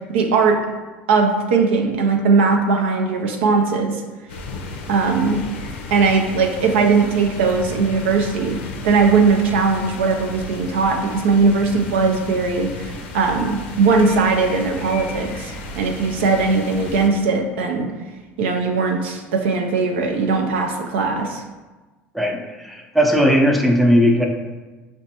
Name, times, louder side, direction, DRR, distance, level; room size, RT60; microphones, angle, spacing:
voice 1, 0.1-0.6 1.1-4.0 4.9-5.4 5.9-17.9 18.4-21.4, right 4 dB, 85° right, 2 dB, 0.5 m, -19 dB
sound 1, 4.3-17.1, left 3 dB, 85° left, 0.5 m, -34 dB
voice 2, 22.1-24.3, equal, ahead, 2 dB, 0.5 m, -17 dB
5.1 x 2.2 x 2.8 m, 1.2 s
hypercardioid pair, 80°, 6 cm